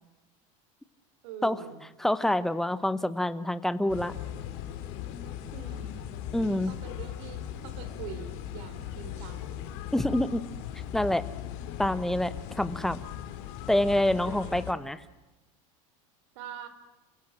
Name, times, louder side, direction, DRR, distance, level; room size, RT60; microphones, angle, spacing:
voice 1, 1.2-1.8 5.5-5.9 6.7-9.5 14.2-14.7 16.4-16.7, right 7 dB, 65° right, 10 dB, 4.1 m, -44 dB
voice 2, 2.0-4.1 6.3-6.7 9.9-10.4 10.9-11.3 11.8-13.0 13.7-15.0, left 1 dB, ahead, 14 dB, 0.8 m, -27 dB
sound 1, 3.9-14.7, left 10 dB, 55° left, 3.1 m, -39 dB
29.5 x 16.0 x 8.8 m, 1.1 s
supercardioid pair, 160°, 16 cm